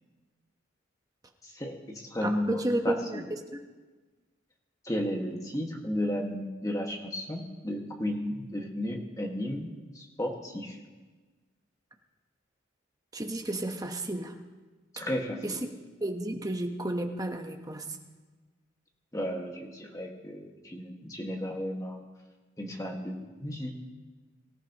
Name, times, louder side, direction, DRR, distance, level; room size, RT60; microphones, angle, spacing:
voice 1, 1.6-3.2 4.9-9.7 10.0-10.8 14.9-15.4 19.1-22.0 22.6-23.7, left 1 dB, 20° left, 1 dB, 1.8 m, -33 dB
voice 2, 2.2-3.6 13.1-14.4 15.4-18.0, right 1 dB, 20° right, 4 dB, 1.1 m, -32 dB
23.5 x 14.5 x 3.0 m, 1.3 s
head